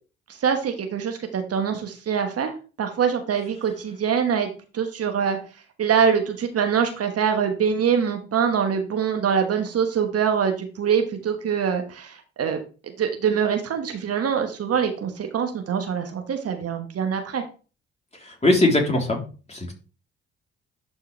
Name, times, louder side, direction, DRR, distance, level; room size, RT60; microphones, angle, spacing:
voice 1, 0.4-5.4 5.8-17.4, right 7 dB, 50° right, 5 dB, 1.3 m, -24 dB
voice 2, 18.2-19.2 19.5-19.7, left 2 dB, 20° left, 0 dB, 3.5 m, -20 dB
11.5 x 4.5 x 3.3 m, 0.35 s
hypercardioid pair, 45°, 31 cm